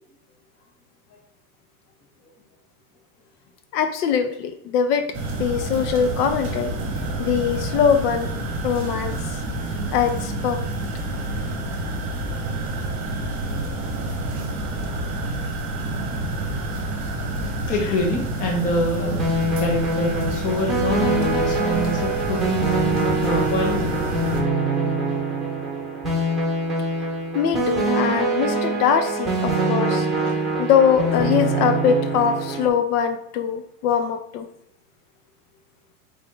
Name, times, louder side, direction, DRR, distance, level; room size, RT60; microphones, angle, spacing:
voice 1, 3.7-5.1 5.4-6.7 7.2-8.3 8.6-9.1 9.9-10.6 27.3-34.5, left 7 dB, 70° left, 8 dB, 0.7 m, -22 dB
sound 1, 5.1-24.4, right 1 dB, 35° right, 0.9 m, -28 dB
voice 2, 17.5-19.2 19.6-22.6 23.2-24.0, left 1 dB, 20° left, 0 dB, 0.4 m, -25 dB
sound 2, 19.2-32.7, right 2 dB, ahead, 0.9 m, -24 dB
3.7 x 2.5 x 3.6 m, 0.75 s
supercardioid pair, 125°, 48 cm